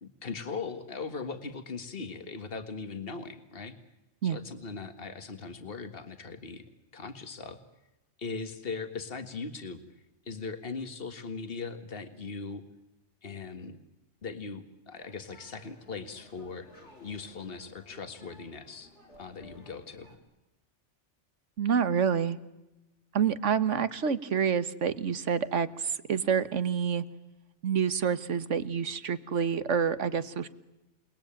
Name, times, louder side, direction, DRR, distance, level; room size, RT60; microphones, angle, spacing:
voice 1, 0.0-3.7 4.2-6.6 6.9-7.6 8.2-9.8 10.3-12.6 13.2-13.8 14.2-16.7 17.0-18.9 19.2-20.1, left 4 dB, 55° left, 9 dB, 2.0 m, -39 dB
sound 1, 15.0-20.2, left 1 dB, 75° left, 4.2 m, -56 dB
voice 2, 21.6-22.4 23.1-27.0 27.6-30.5, right 7 dB, 90° right, 14 dB, 1.6 m, -28 dB
29.0 x 20.5 x 9.0 m, 0.99 s
omnidirectional pair, 1.2 m